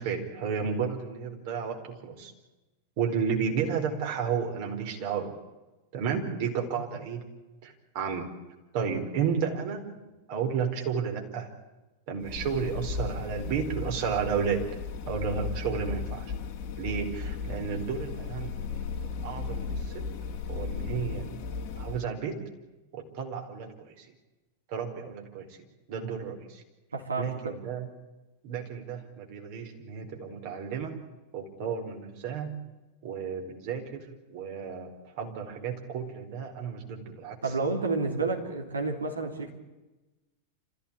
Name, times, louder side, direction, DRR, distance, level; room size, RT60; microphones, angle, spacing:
voice 1, 0.0-2.3 3.0-5.4 5.9-7.2 7.6-8.3 8.7-9.8 10.3-11.5 12.1-14.7 15.1-16.3 16.8-18.9 19.2-20.1 20.5-21.3 21.7-22.4 22.9-24.1 24.7-25.6 25.9-26.6 27.2-27.9 28.4-30.9 31.3-32.6 33.0-34.0 34.3-37.5, right 6 dB, 50° right, 2 dB, 4.6 m, -32 dB
sound 1, 12.2-22.1, left 5 dB, 40° left, 2.2 m, -35 dB
voice 2, 26.9-27.6 37.4-39.5, right 3 dB, 75° right, 2 dB, 3.4 m, -30 dB
27.0 x 15.5 x 8.6 m, 1.1 s
figure-of-eight pair, 90°, 0 cm